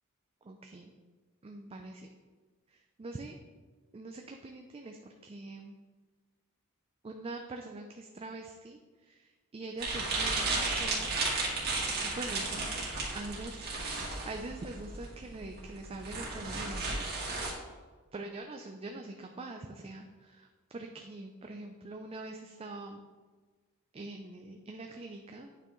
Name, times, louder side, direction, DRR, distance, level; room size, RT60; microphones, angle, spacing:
voice 1, 0.4-0.9 1.4-2.1 2.7-3.4 3.9-5.8 7.0-11.1 12.0-12.8 13.1-17.0 18.1-20.5 20.7-23.0 23.9-25.5, right 2 dB, 25° right, 3 dB, 0.4 m, -44 dB
sound 1, 9.8-17.5, right 3 dB, 45° right, 2.0 m, -34 dB
8.9 x 5.6 x 3.1 m, 1.4 s
head